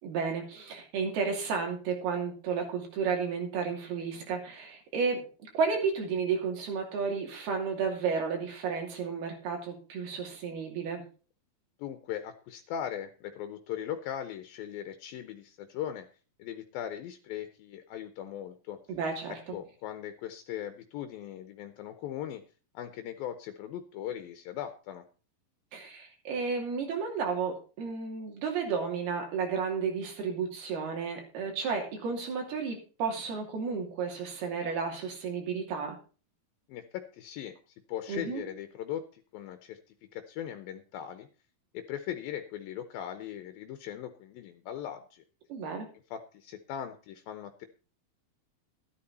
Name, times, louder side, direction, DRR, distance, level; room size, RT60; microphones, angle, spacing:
voice 1, 0.0-5.3 5.5-11.0 18.9-19.4 25.7-36.0 38.1-38.4 45.5-45.9, right 5 dB, 85° right, 1 dB, 4.6 m, -32 dB
voice 2, 11.8-16.1 16.4-18.8 19.3-22.4 22.7-25.1 36.7-37.5 37.9-39.8 40.1-41.3 41.7-45.2 46.1-47.7, left 10 dB, 80° left, 9 dB, 2.5 m, -39 dB
12.5 x 11.0 x 4.2 m, 0.36 s
omnidirectional pair, 4.4 m